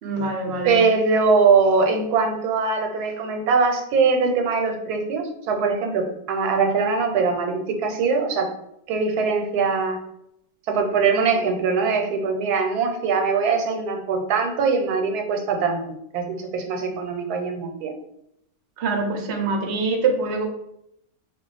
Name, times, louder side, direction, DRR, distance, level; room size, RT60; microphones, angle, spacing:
voice 1, 0.0-0.8 18.8-20.5, right 3 dB, 65° right, 2 dB, 0.7 m, -24 dB
voice 2, 0.7-8.5 8.9-10.0 10.7-15.8 16.1-17.9, right 4 dB, 90° right, 3 dB, 1.1 m, -22 dB
2.3 x 2.3 x 3.8 m, 0.79 s
omnidirectional pair, 1.6 m